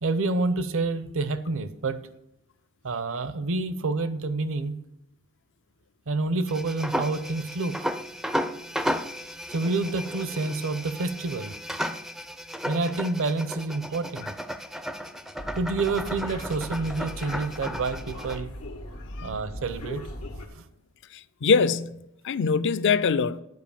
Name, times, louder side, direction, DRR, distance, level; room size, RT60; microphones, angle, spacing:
voice 1, 0.0-2.0 2.8-4.8 6.1-7.8 9.5-11.5 12.7-14.3 15.6-18.5 19.2-20.0 20.5-20.6, right 3 dB, 65° right, 0.6 m, -28 dB
sound 1, 6.5-18.4, equal, ahead, 0.4 m, -34 dB
sound 2, 15.4-20.5, left 1 dB, 85° left, 1.2 m, -39 dB
voice 2, 21.4-23.4, left 5 dB, 55° left, 0.4 m, -23 dB
9.5 x 4.9 x 7.0 m
head